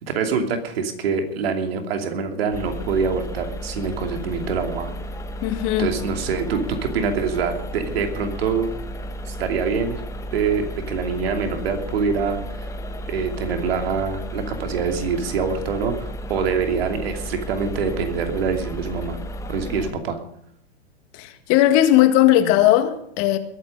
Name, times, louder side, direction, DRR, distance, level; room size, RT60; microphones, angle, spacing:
voice 1, 0.0-4.9 5.8-8.7 9.2-10.0 10.3-12.7 13.1-19.2 19.5-20.2, right 5 dB, 65° right, 2.8 m, -25 dB
sound 1, 2.5-19.9, equal, 10° left, 1.6 m, -33 dB
voice 2, 5.4-5.9 21.2-23.4, left 13 dB, 45° left, 1.8 m, -17 dB
21.5 x 9.1 x 5.4 m
hypercardioid pair, 105°, 32 cm